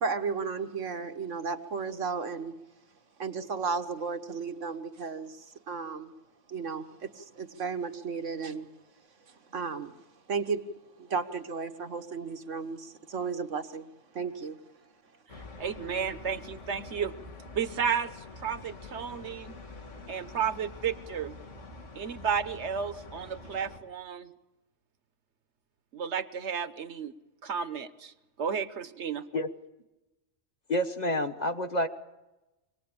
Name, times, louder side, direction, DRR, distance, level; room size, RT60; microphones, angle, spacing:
voice 1, 0.0-2.5 3.2-6.1 6.5-8.7 9.3-9.9 10.3-10.7 11.0-13.9 14.1-14.6, right 5 dB, 90° right, 7 dB, 1.7 m, -34 dB
sound 1, 15.3-23.8, left 3 dB, 90° left, 2.7 m, -46 dB
voice 2, 15.6-17.1 17.5-18.1 18.4-19.6 20.1-21.3 21.9-24.3 25.9-27.1 27.4-29.2, right 7 dB, 70° right, 12 dB, 1.3 m, -32 dB
voice 3, 30.7-31.9, left 1 dB, 35° left, 7 dB, 1.3 m, -28 dB
25.0 x 19.0 x 8.7 m, 1.0 s
omnidirectional pair, 1.2 m